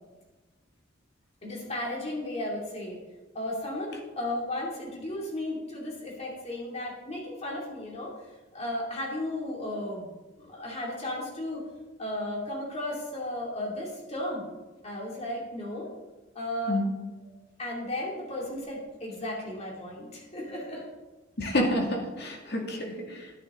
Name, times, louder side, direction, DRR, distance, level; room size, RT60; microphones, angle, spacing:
voice 1, 1.4-3.0 3.3-8.1 8.5-11.6 12.0-14.5 14.8-15.9 16.3-16.8 17.6-20.8, left 1 dB, 35° left, -2 dB, 2.6 m, -34 dB
voice 2, 21.4-23.3, left 1 dB, 60° left, 0 dB, 2.2 m, -29 dB
11.0 x 10.5 x 3.7 m, 1.2 s
head